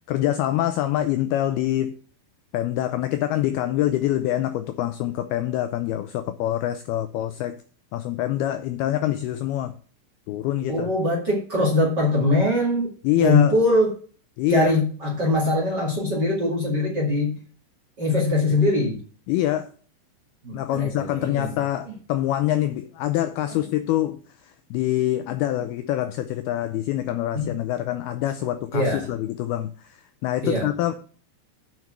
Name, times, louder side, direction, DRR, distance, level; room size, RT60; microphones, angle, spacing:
voice 1, 0.1-1.9 2.5-7.6 7.9-9.7 10.3-10.9 13.0-13.6 14.4-14.7 19.3-19.7 20.5-24.2 24.4-31.0, left 13 dB, 90° left, 10 dB, 2.2 m, -25 dB
voice 2, 10.7-12.9 13.2-13.9 14.5-17.4 18.0-19.0 20.4-21.5 23.5-23.6 27.3-27.5 28.7-29.1 30.4-30.7, left 2 dB, 35° right, 0 dB, 1.9 m, -22 dB
9.3 x 5.2 x 7.4 m, 0.42 s
omnidirectional pair, 5.2 m